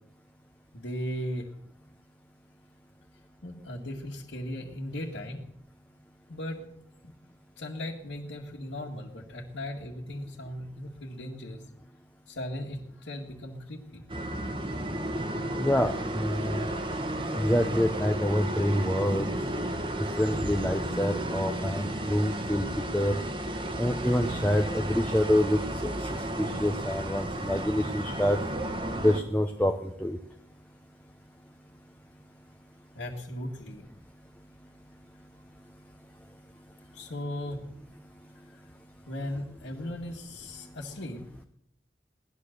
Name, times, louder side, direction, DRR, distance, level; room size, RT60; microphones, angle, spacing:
voice 1, 0.7-1.5 3.4-5.4 6.3-6.6 7.0-7.1 7.6-11.6 12.3-14.0 32.9-33.8 36.9-37.7 39.1-41.3, left 1 dB, 85° left, -5 dB, 2.2 m, -37 dB
sound 1, 14.1-29.2, right 1 dB, 30° right, 1.4 m, -33 dB
voice 2, 15.6-16.7 17.3-19.3 20.2-22.7 22.9-23.2 23.8-25.9 26.4-28.4 29.0-30.2, equal, 5° left, 3 dB, 0.8 m, -27 dB
18.0 x 11.5 x 6.7 m, 0.73 s
head